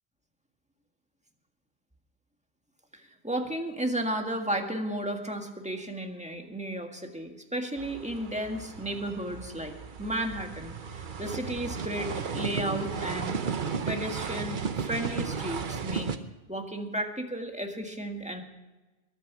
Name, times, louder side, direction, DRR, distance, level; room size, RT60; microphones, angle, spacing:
voice 1, 2.9-13.3 13.9-16.1 16.5-18.4, right 1 dB, 5° right, 3 dB, 1.7 m, -33 dB
sound 1, 7.8-16.2, right 6 dB, 55° right, 1.0 m, -34 dB
22.0 x 9.2 x 6.1 m, 1.1 s
omnidirectional pair, 1.1 m